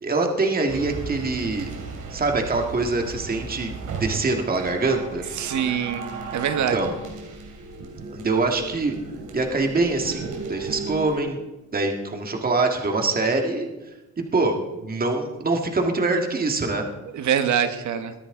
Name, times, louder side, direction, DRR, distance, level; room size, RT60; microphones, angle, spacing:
voice 1, 0.0-1.7 2.1-3.7 4.0-5.2 6.7-6.9 8.1-8.9 9.3-11.4 11.7-13.7 14.2-16.9, right 3 dB, 30° right, 3 dB, 2.0 m, -24 dB
sound 1, 0.7-11.2, right 4 dB, 85° right, 2.9 m, -36 dB
voice 2, 5.4-6.8 17.1-18.1, right 8 dB, 70° right, 8 dB, 1.4 m, -24 dB
22.0 x 10.0 x 3.8 m, 1.0 s
cardioid pair, 90°, 30 cm